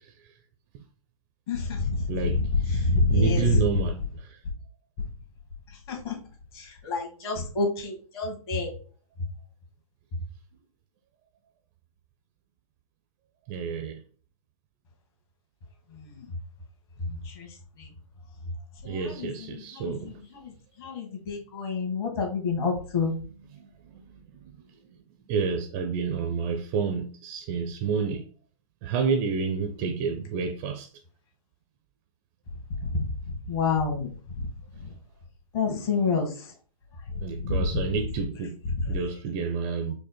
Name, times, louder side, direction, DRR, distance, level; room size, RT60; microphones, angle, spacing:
voice 1, 1.5-3.6 5.9-6.1 6.5-8.7 15.9-16.3 17.0-17.9 18.8-20.5 20.8-23.2 32.8-34.5 34.8-34.9 35.5-36.5 37.1-37.8 38.6-38.8, left 4 dB, 45° left, 1.8 m, -28 dB
voice 2, 2.1-4.4 13.5-14.0 18.8-20.2 23.6-24.0 25.3-28.2 28.8-30.9 37.2-38.6 38.9-39.9, right 5 dB, 25° right, 0.4 m, -29 dB
5.0 x 2.1 x 4.3 m
figure-of-eight pair, 125°, 18 cm